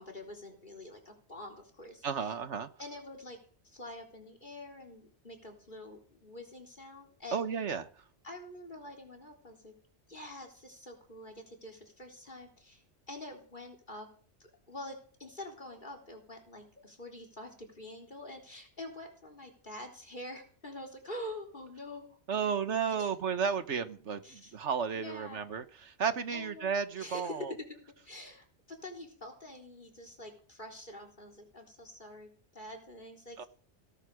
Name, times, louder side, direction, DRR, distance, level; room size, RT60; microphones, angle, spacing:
voice 1, 0.0-2.3 2.8-3.4 3.6-7.4 8.2-9.7 10.1-14.1 14.4-22.5 23.0-23.1 24.2-24.5 24.9-25.5 26.3-33.5, left 1 dB, 45° left, 4.1 m, -46 dB
voice 2, 2.0-2.7 7.3-7.8 22.3-27.5 33.4-33.5, right 6 dB, 80° right, 1.4 m, -33 dB
17.5 x 12.5 x 5.0 m
omnidirectional pair, 1.2 m